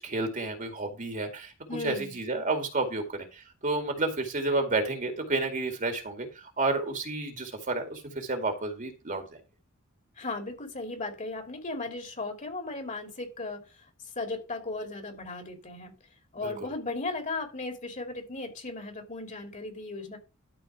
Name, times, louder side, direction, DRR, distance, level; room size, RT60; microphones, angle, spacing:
voice 1, 0.0-1.5 1.8-9.3 16.4-16.5, right 2 dB, 40° right, 5 dB, 2.2 m, -31 dB
voice 2, 1.7-2.2 10.2-13.9 14.2-15.9 16.3-20.2, left 3 dB, 35° left, 4 dB, 2.8 m, -36 dB
12.5 x 4.5 x 5.9 m, 0.30 s
head